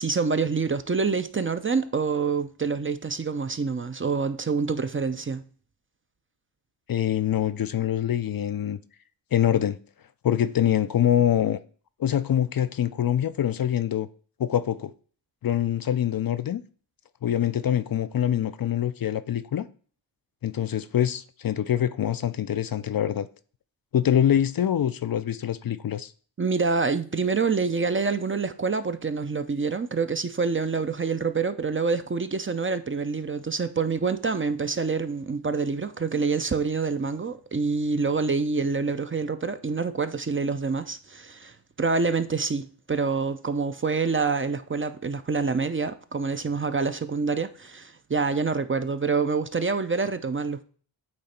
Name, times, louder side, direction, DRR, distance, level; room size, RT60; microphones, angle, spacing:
voice 1, 0.0-5.4 26.4-50.6, right 4 dB, 25° right, 0.5 m, -26 dB
voice 2, 6.9-8.8 9.3-9.8 10.2-11.6 12.0-14.1 14.4-14.9 15.4-16.6 17.2-19.7 20.4-23.3 23.9-26.1, left 10 dB, 50° left, 0.5 m, -24 dB
8.8 x 3.1 x 4.3 m
cardioid pair, 55°, 47 cm